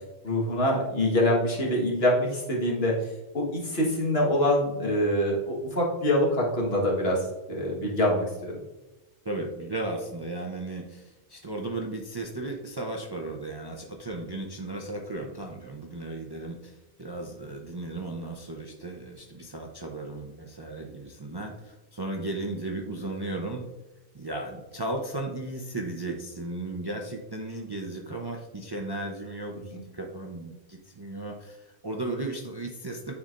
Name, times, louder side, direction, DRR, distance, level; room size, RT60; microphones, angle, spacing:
voice 1, 0.2-2.9 3.3-7.2 7.5-8.5, left 1 dB, 65° left, -2 dB, 1.7 m, -25 dB
voice 2, 9.2-23.6 24.1-33.1, right 2 dB, 30° right, 1 dB, 0.5 m, -35 dB
9.4 x 4.2 x 2.5 m, 1.0 s
omnidirectional pair, 1.1 m